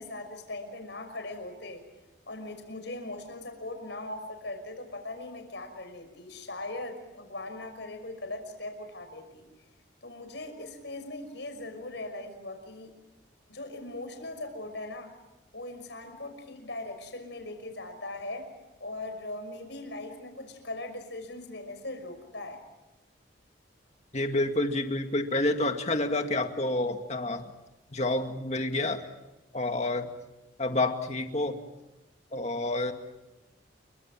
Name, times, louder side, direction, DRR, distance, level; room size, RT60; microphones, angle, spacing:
voice 1, 0.0-1.8 2.3-9.5 10.0-12.9 13.5-15.1 15.5-18.5 18.8-22.6, left 2 dB, 65° left, 6 dB, 5.9 m, -40 dB
voice 2, 24.1-27.5 27.9-29.0 29.5-30.1 30.6-31.6 32.3-32.9, left 2 dB, 35° left, 5 dB, 2.1 m, -28 dB
29.0 x 24.0 x 7.5 m, 1.0 s
head